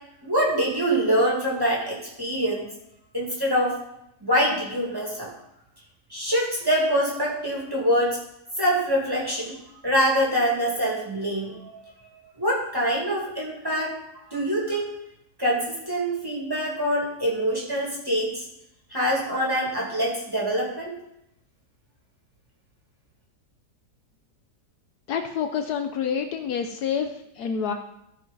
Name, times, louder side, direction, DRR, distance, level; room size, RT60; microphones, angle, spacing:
voice 1, 0.2-2.7 3.1-3.8 4.2-5.3 6.1-8.2 8.6-9.6 9.8-13.9 14.3-14.9 15.4-18.4 18.9-20.9, equal, 15° right, -4 dB, 2.2 m, -25 dB
voice 2, 25.1-27.7, left 7 dB, 70° left, 6 dB, 1.2 m, -28 dB
14.5 x 5.1 x 4.0 m, 0.80 s
omnidirectional pair, 1.8 m